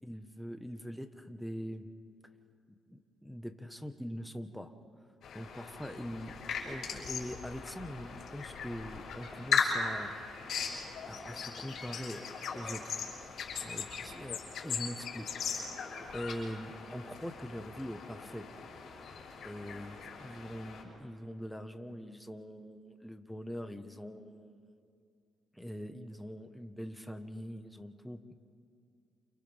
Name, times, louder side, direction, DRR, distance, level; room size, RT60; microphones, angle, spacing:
voice 1, 0.0-1.9 2.9-4.7 5.3-10.1 11.0-13.1 13.6-15.6 16.1-18.5 19.4-24.7 25.5-28.3, equal, ahead, 7 dB, 1.4 m, -43 dB
sound 1, 5.2-20.8, left 6 dB, 70° left, 6.6 m, -38 dB
29.5 x 29.0 x 3.7 m, 2.4 s
cardioid pair, 90°, 0 cm